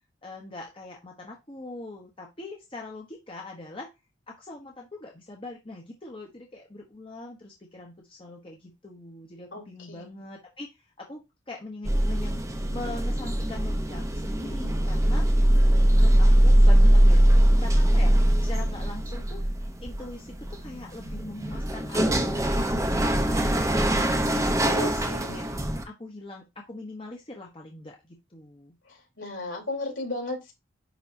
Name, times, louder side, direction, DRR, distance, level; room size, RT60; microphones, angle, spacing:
voice 1, 0.2-3.9 4.3-10.7 11.0-12.4 12.7-15.3 15.9-17.2 17.6-19.5 19.8-28.8, left 2 dB, 25° left, 1.1 m, -42 dB
voice 2, 9.5-10.2 24.6-25.4 29.2-30.5, left 2 dB, 70° left, 4.1 m, -34 dB
sound 1, 11.8-25.8, right 1 dB, 15° right, 0.8 m, -22 dB
10.5 x 3.7 x 2.8 m
head